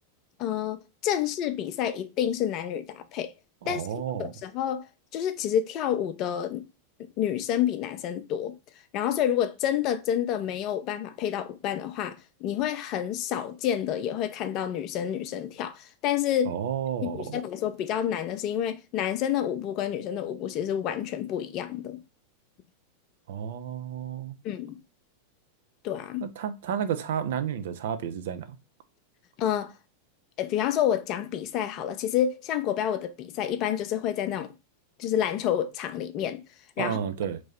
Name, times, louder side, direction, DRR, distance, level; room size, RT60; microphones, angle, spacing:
voice 1, 0.4-3.3 3.7-3.8 4.2-6.6 7.2-8.6 8.9-16.5 17.0-22.0 24.4-24.8 25.8-26.2 29.4-29.7 30.4-34.5 35.0-36.4 36.8-37.0, left 10 dB, 40° left, 0.5 m, -29 dB
voice 2, 3.6-4.3 16.5-17.4 23.3-24.4 26.2-28.6 36.8-37.4, right 8 dB, 55° right, 0.4 m, -31 dB
3.0 x 2.7 x 4.3 m
figure-of-eight pair, 90°, 0 cm